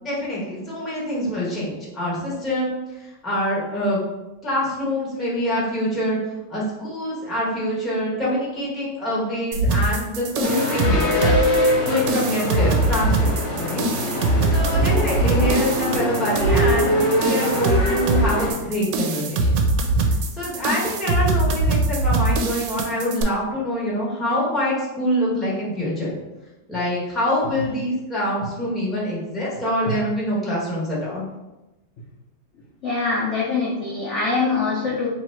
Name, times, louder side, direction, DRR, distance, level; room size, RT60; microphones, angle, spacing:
voice 1, 0.0-2.8 3.0-4.0 4.4-6.2 6.5-11.4 11.8-13.3 13.6-13.8 14.1-19.5 20.3-26.1 26.7-31.2, equal, ahead, -7 dB, 0.8 m, -25 dB
sound 1, 9.5-23.2, right 2 dB, 75° right, 1.1 m, -22 dB
sound 2, 10.4-18.5, equal, 45° left, 1.1 m, -23 dB
voice 2, 32.8-35.1, left 4 dB, 65° left, -5 dB, 0.7 m, -23 dB
3.1 x 2.8 x 4.3 m, 1.0 s
omnidirectional pair, 2.0 m